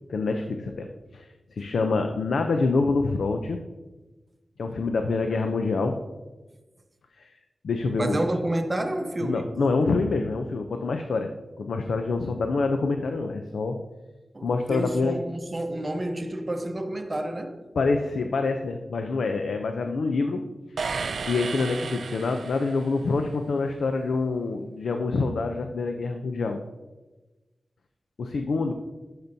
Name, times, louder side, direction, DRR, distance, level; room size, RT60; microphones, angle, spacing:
voice 1, 0.1-1.3 1.5-3.6 4.6-6.0 7.2-7.3 7.6-8.2 9.2-11.3 11.6-13.8 14.4-15.2 17.8-20.4 20.7-20.9 21.3-26.6 28.2-28.7, left 3 dB, 90° left, 0.5 m, -26 dB
voice 2, 8.0-9.5 14.3-17.6, right 1 dB, 25° right, 0.7 m, -29 dB
sound 1, 20.8-23.0, right 5 dB, 75° right, 0.3 m, -33 dB
12.0 x 5.9 x 2.7 m
wide cardioid pair, 130°, 0 cm